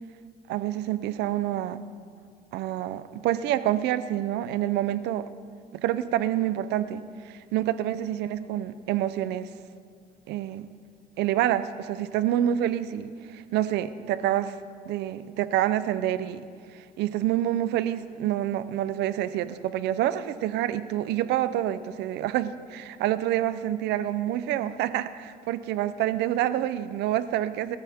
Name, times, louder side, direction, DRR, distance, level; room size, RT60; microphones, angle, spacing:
voice 1, 0.5-1.8 2.5-5.3 5.8-9.5 10.3-10.7 11.2-14.6 14.9-16.4 16.7-27.8, right 12 dB, 85° right, 14 dB, 0.7 m, -27 dB
22.0 x 14.0 x 3.6 m, 2.1 s
cardioid pair, 110°, 17 cm